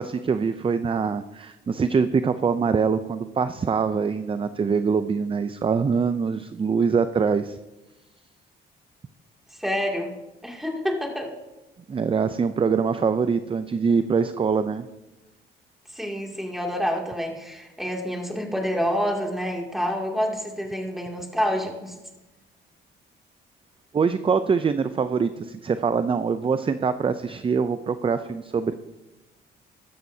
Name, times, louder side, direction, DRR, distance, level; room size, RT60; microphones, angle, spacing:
voice 1, 0.0-7.6 11.9-14.9 23.9-28.7, right 5 dB, 25° right, 11 dB, 0.5 m, -24 dB
voice 2, 9.5-10.1 10.4-11.3 15.9-22.0, equal, ahead, 0 dB, 2.5 m, -28 dB
14.0 x 12.5 x 2.8 m, 1.0 s
cardioid pair, 90°, 20 cm